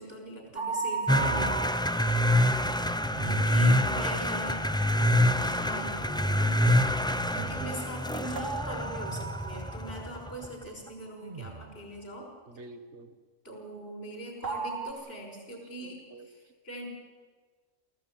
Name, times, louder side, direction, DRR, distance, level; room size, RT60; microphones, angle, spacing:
voice 1, 0.0-1.5 3.3-4.6 5.4-12.3 13.4-16.0 16.6-16.9, right 1 dB, 50° left, 1 dB, 6.1 m, -41 dB
sound 1, 0.5-3.5 8.4-10.5 14.4-14.9, right 5 dB, 90° right, 2.0 m, -36 dB
sound 2, 1.1-10.5, left 1 dB, 5° left, 0.5 m, -26 dB
sound 3, 1.1-2.0 3.1-3.8 5.0-5.8 7.0-8.0 9.1-9.6 11.2-11.9, right 5 dB, 40° right, 1.2 m, -41 dB
voice 2, 3.2-4.2 5.4-6.6 12.5-13.2 15.8-16.5, right 2 dB, 65° right, 8 dB, 1.7 m, -47 dB
23.5 x 15.5 x 8.9 m, 1.4 s
omnidirectional pair, 1.3 m